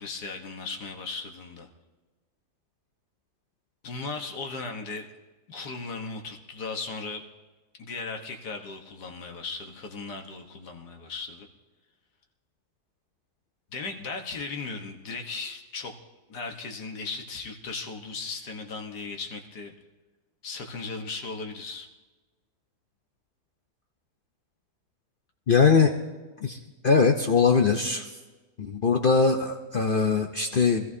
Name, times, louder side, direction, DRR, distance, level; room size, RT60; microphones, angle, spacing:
voice 1, 0.0-1.7 3.8-5.1 5.5-7.2 7.8-11.5 13.7-15.9 16.3-19.7 20.4-21.9, left 4 dB, 75° left, 3 dB, 1.8 m, -37 dB
voice 2, 25.5-25.9 26.4-26.6 26.8-28.1 28.6-30.9, left 5 dB, 50° left, 4 dB, 0.6 m, -21 dB
24.0 x 14.5 x 2.7 m, 1.2 s
omnidirectional pair, 1.8 m